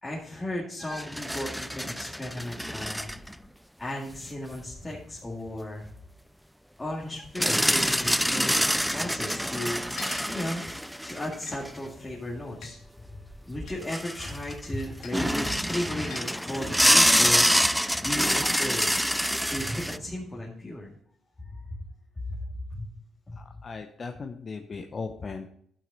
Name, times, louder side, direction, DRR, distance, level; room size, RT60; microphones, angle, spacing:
voice 1, 0.0-3.1 3.8-5.9 6.8-9.8 10.3-10.6 11.0-12.8 13.5-18.9 19.5-20.9 21.7-21.8 22.3-22.4 22.7-22.9 23.3-23.4, left 1 dB, 20° left, -4 dB, 2.1 m, -35 dB
sound 1, 0.8-3.3 4.0-4.1 7.4-11.8 13.3-13.4 13.6-14.7 15.1-20.0, equal, ahead, 0.3 m, -26 dB
sound 2, 10.0-10.4 11.5-11.6 12.6-12.7 13.7-13.8 15.0-15.2 16.1-16.3, left 6 dB, 80° left, 1.4 m, -43 dB
sound 3, 19.3-20.5, right 2 dB, 20° right, 0.8 m, -41 dB
voice 2, 23.4-25.5, left 4 dB, 40° left, 5 dB, 0.8 m, -37 dB
11.5 x 6.2 x 4.0 m, 0.66 s
cardioid pair, 90°, 0 cm